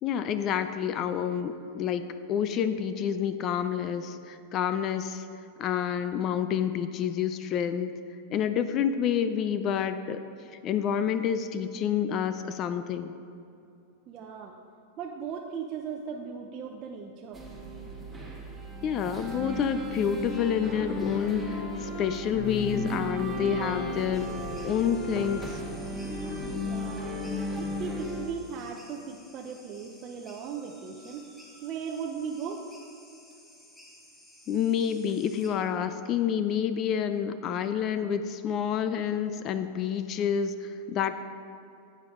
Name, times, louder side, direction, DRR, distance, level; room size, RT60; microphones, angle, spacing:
voice 1, 0.0-2.0 2.3-5.2 5.6-7.9 8.3-10.2 10.6-13.1 18.8-24.3 24.6-25.6 34.5-41.2, left 8 dB, 35° left, 10 dB, 0.4 m, -28 dB
voice 2, 14.1-14.5 15.0-17.4 26.6-27.1 27.6-31.3 31.6-32.6, right 6 dB, 40° right, 1 dB, 0.7 m, -37 dB
sound 1, 17.3-28.3, left 1 dB, 5° right, 1.7 m, -35 dB
sound 2, 24.1-35.5, left 1 dB, 15° left, 1.8 m, -54 dB
10.0 x 8.7 x 3.7 m, 2.7 s
hypercardioid pair, 130°, 0 cm